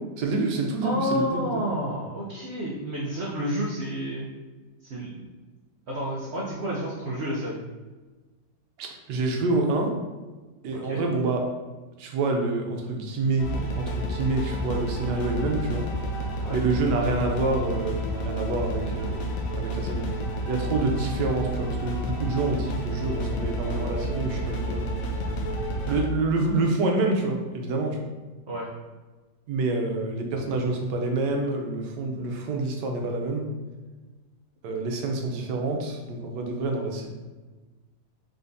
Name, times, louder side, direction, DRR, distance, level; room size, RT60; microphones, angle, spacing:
voice 1, 0.2-1.6 8.8-10.0 10.6-11.4 12.0-15.9 16.5-20.1 20.5-24.9 25.8-28.1 29.5-33.5 34.6-37.1, right 2 dB, 85° right, 2 dB, 1.3 m, -27 dB
voice 2, 0.8-4.3 4.8-5.2 5.9-7.6 10.7-11.0 16.4-16.6 28.5-28.7, equal, 60° right, -5 dB, 0.7 m, -30 dB
sound 1, 13.4-26.1, right 1 dB, 70° left, 0.9 m, -30 dB
3.8 x 3.4 x 2.6 m, 1.2 s
omnidirectional pair, 1.8 m